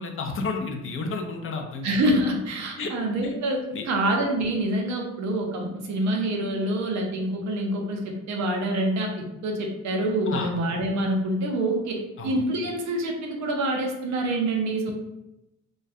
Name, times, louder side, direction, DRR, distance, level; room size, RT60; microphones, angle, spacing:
voice 1, 0.0-2.1 2.8-2.9 3.2-3.3 3.7-3.8 10.3-10.5 12.2-12.4, left 4 dB, 45° left, 3 dB, 0.4 m, -31 dB
voice 2, 1.8-3.6 3.9-14.9, right 1 dB, 65° right, 1 dB, 0.6 m, -26 dB
2.3 x 2.1 x 2.6 m, 0.92 s
cardioid pair, 90°, 30 cm